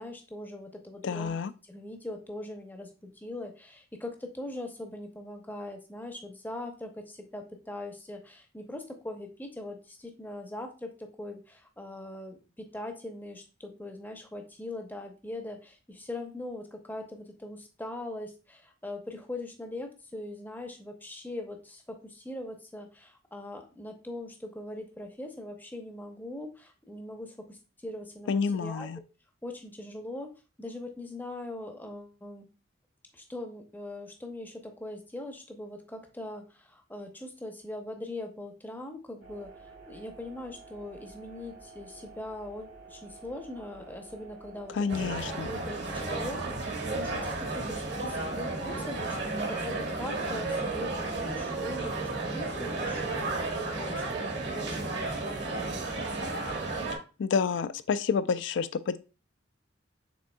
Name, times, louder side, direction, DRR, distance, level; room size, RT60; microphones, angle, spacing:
voice 1, 0.0-1.3 1.6-28.9 29.4-30.3 30.6-32.5 33.1-45.1 45.4-54.3 54.5-55.9, left 1 dB, 10° left, 0.6 m, -41 dB
voice 2, 1.0-1.5 28.3-29.0 44.7-45.5 57.2-59.0, left 5 dB, 70° left, 0.3 m, -29 dB
sound 1, 39.2-47.2, right 4 dB, 80° right, 1.7 m, -50 dB
sound 2, 44.9-57.0, right 3 dB, 60° right, 1.1 m, -33 dB
6.2 x 3.7 x 2.2 m
head